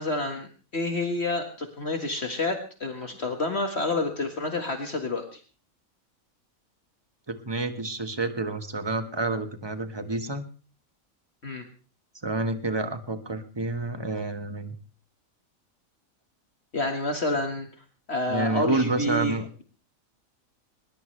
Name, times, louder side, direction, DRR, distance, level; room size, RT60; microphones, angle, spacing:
voice 1, 0.0-5.4 11.4-11.6 16.7-17.7 18.1-19.6, left 2 dB, 50° left, 4 dB, 2.0 m, -29 dB
voice 2, 7.3-10.5 12.2-14.7 18.3-19.5, right 2 dB, 20° right, 8 dB, 1.5 m, -29 dB
21.0 x 20.5 x 3.3 m, 0.37 s
omnidirectional pair, 1.5 m